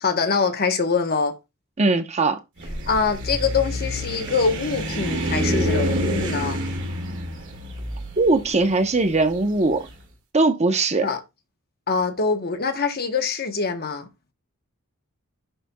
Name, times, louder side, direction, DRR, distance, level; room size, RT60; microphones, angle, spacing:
voice 1, 0.0-1.4 2.9-6.6 11.0-11.2 11.9-14.1, left 5 dB, 45° left, 0.9 m, -24 dB
voice 2, 1.8-2.4 8.2-9.9 10.3-11.1, right 3 dB, 30° right, 0.7 m, -20 dB
sound 1, 2.6-9.7, equal, 60° right, 2.1 m, -27 dB
11.0 x 4.1 x 2.2 m
head